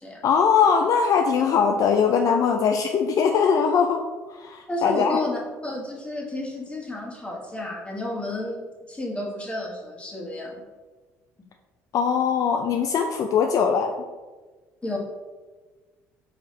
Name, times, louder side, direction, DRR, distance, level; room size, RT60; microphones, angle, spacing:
voice 1, 0.2-4.0 4.3-5.2 11.9-13.9, left 6 dB, 50° left, 3 dB, 0.4 m, -21 dB
voice 2, 4.7-10.6 14.8-15.0, left 1 dB, 15° left, -2 dB, 1.3 m, -31 dB
4.7 x 3.0 x 3.2 m, 1.3 s
hypercardioid pair, 60°, 7 cm